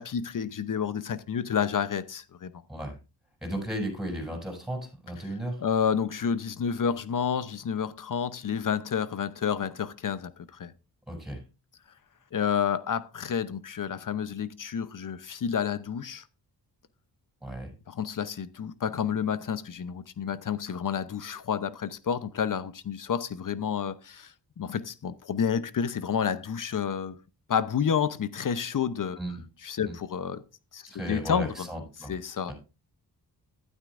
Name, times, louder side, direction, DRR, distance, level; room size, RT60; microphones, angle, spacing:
voice 1, 0.0-2.5 5.6-10.7 12.3-16.2 17.9-27.2 27.5-29.2 29.6-30.4 30.7-30.8 31.1-31.5 32.1-32.5, left 7 dB, 55° left, 0.8 m, -30 dB
voice 2, 3.4-5.6 11.1-11.4 17.4-17.7 29.2-29.4 29.8-29.9 30.9-32.1 32.5-32.6, right 1 dB, ahead, 7.4 m, -35 dB
12.5 x 12.0 x 2.5 m
cardioid pair, 75°, 39 cm